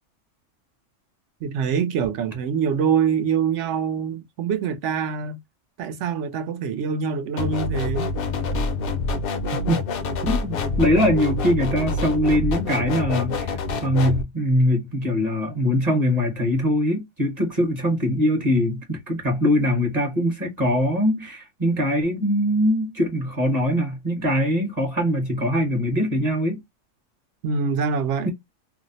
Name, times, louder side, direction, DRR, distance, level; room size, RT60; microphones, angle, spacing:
voice 1, 1.4-5.4 5.8-8.1 27.4-28.3, right 6 dB, 70° right, 0.9 m, -24 dB
sound 1, 7.4-14.2, left 3 dB, 60° left, 0.7 m, -26 dB
voice 2, 10.2-26.6, equal, 35° right, 0.9 m, -22 dB
2.6 x 2.0 x 3.9 m
omnidirectional pair, 1.3 m